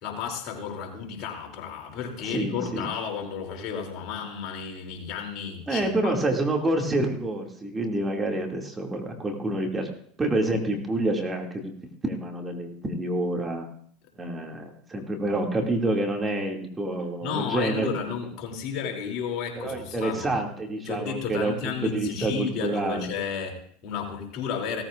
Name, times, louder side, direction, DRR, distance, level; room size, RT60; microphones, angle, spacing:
voice 1, 0.0-6.1 17.2-20.3 20.8-24.8, left 6 dB, 55° left, 2 dB, 2.9 m, -32 dB
voice 2, 2.2-2.9 5.7-9.9 10.2-11.7 12.0-13.7 14.2-18.1 19.6-23.0, right 1 dB, 20° right, 1 dB, 2.3 m, -28 dB
17.0 x 14.0 x 2.5 m, 0.62 s
hypercardioid pair, 90°, 0 cm